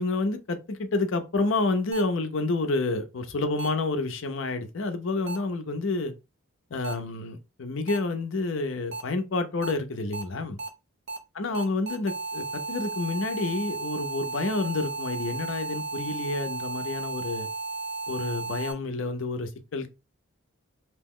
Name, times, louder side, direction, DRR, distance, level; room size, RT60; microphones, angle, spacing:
voice 1, 0.0-6.1 6.7-10.6 11.3-17.5 18.1-19.9, left 3 dB, 60° left, 0.5 m, -29 dB
sound 1, 1.9-2.0 3.6-3.7 5.3-5.4 6.8-6.9 7.9-8.0 8.9-9.0 9.6-9.7 10.1-10.2 10.6-10.7 11.1-11.2 11.5-18.7, right 3 dB, 50° right, 0.5 m, -34 dB
2.8 x 2.1 x 3.6 m
head